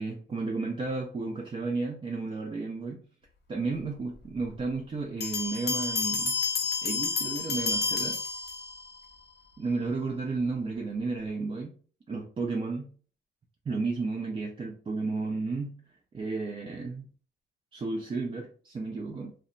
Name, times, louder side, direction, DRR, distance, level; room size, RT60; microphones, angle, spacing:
voice 1, 0.0-3.0 3.5-6.4 6.8-8.2 9.6-11.7 12.1-12.9 13.7-15.7 16.1-17.1 17.7-19.3, right 3 dB, 25° right, 0 dB, 0.4 m, -32 dB
Bell, 5.2-9.0, left 4 dB, 55° left, 0.7 m, -30 dB
2.0 x 2.0 x 3.7 m, 0.43 s
cardioid pair, 90°, 20 cm